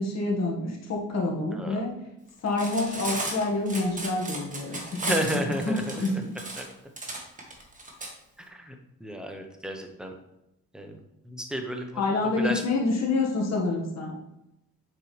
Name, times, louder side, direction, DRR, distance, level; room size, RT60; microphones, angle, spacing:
voice 1, 0.0-1.9 2.4-5.1 5.6-6.4 12.0-14.1, left 2 dB, 60° left, -1 dB, 1.8 m, -27 dB
Cutlery silverware, 2.5-8.1, right 2 dB, 25° right, 1.6 m, -34 dB
voice 2, 5.1-6.2 6.6-6.7 8.4-10.1 10.7-12.0 12.4-12.6, right 1 dB, 5° right, 3 dB, 1.1 m, -33 dB
7.5 x 4.9 x 3.4 m, 0.89 s
cardioid pair, 90°, 30 cm